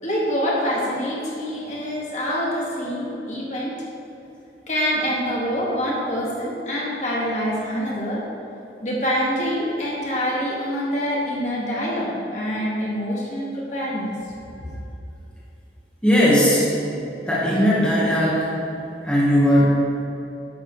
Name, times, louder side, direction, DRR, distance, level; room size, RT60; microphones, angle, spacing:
voice 1, 0.0-3.8 4.7-8.3 8.8-14.1, equal, 40° left, -4 dB, 2.1 m, -25 dB
voice 2, 16.0-16.7 17.3-18.5 19.0-19.7, equal, 5° left, -7 dB, 1.6 m, -18 dB
11.0 x 7.6 x 4.8 m, 2.9 s
head